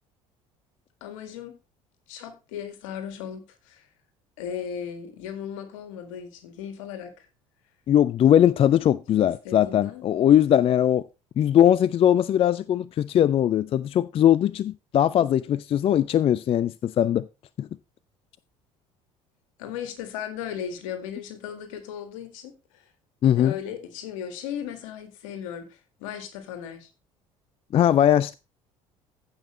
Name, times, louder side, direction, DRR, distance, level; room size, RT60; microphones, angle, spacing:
voice 1, 1.0-1.5 2.1-3.9 4.4-7.3 9.1-10.0 19.6-22.8 23.2-26.9, left 8 dB, 70° left, 1.9 m, -37 dB
voice 2, 7.9-11.0 11.4-17.3 17.6-17.7 23.2-23.6 27.7-28.3, left 10 dB, 35° left, 0.4 m, -20 dB
15.0 x 5.6 x 3.2 m
figure-of-eight pair, 60°, 18 cm